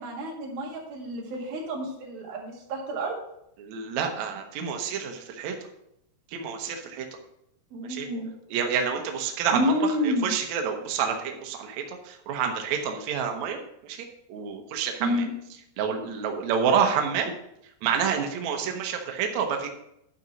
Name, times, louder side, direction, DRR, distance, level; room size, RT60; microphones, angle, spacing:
voice 1, 0.0-3.1 7.7-8.3 9.5-10.3 15.0-15.3, equal, 65° right, -2 dB, 3.7 m, -29 dB
voice 2, 3.6-5.5 6.3-7.1 7.8-8.1 8.5-14.0 14.3-15.2 15.8-17.3 17.8-19.7, right 7 dB, 80° right, 4 dB, 1.6 m, -28 dB
11.5 x 4.1 x 5.9 m, 0.77 s
omnidirectional pair, 4.7 m